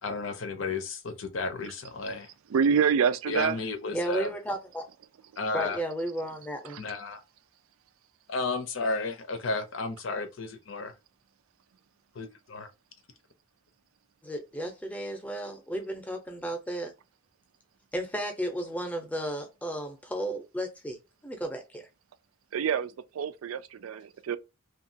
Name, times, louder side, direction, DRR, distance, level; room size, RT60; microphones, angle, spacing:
voice 1, 0.0-2.3 3.3-4.3 5.4-5.8 6.8-7.2 8.3-10.9 12.1-12.7, left 3 dB, 70° left, 0.6 m, -33 dB
voice 2, 2.5-3.6 6.7-6.8 22.5-24.4, right 7 dB, 85° right, 0.4 m, -27 dB
voice 3, 3.9-4.8 5.5-6.8 14.2-16.9 17.9-21.0 21.2-21.9, right 1 dB, 5° left, 0.6 m, -34 dB
2.8 x 2.3 x 2.7 m
head